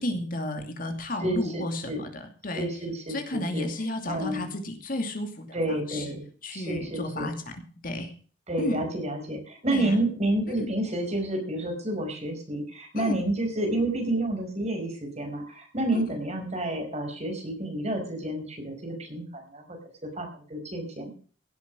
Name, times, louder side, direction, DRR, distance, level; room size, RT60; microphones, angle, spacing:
voice 1, 0.0-2.7 3.1-6.2 6.4-7.3 7.8-8.1 8.6-8.8 9.7-10.0 10.6-10.7 12.9-13.1 15.9-16.2, left 1 dB, 45° left, 6 dB, 2.7 m, -32 dB
voice 2, 1.2-2.1 2.6-3.7 4.1-4.5 5.5-6.3 6.5-7.3 8.5-19.8 20.2-21.1, right 1 dB, 35° right, 3 dB, 5.1 m, -30 dB
17.0 x 8.3 x 6.2 m, 0.42 s
head